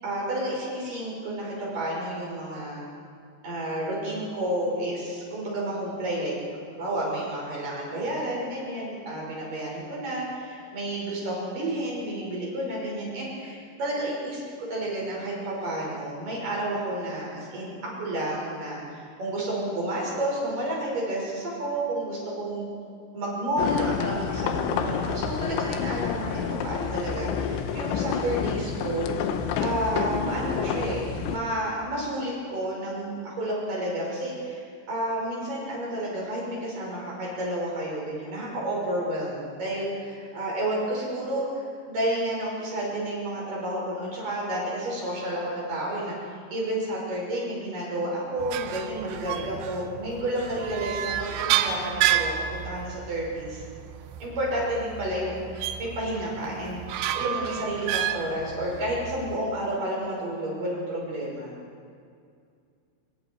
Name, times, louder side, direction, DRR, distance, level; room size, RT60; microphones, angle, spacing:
voice 1, 0.0-2.8 3.4-6.3 6.8-14.4 14.7-22.7 23.1-29.1 29.6-53.6 54.2-61.5, right 1 dB, 45° right, -4 dB, 7.3 m, -31 dB
sound 1, 23.6-31.4, left 7 dB, 85° left, 3.6 m, -29 dB
sound 2, 48.4-59.4, right 10 dB, 75° right, 2.9 m, -31 dB
25.5 x 23.0 x 4.7 m, 2.3 s
omnidirectional pair, 5.3 m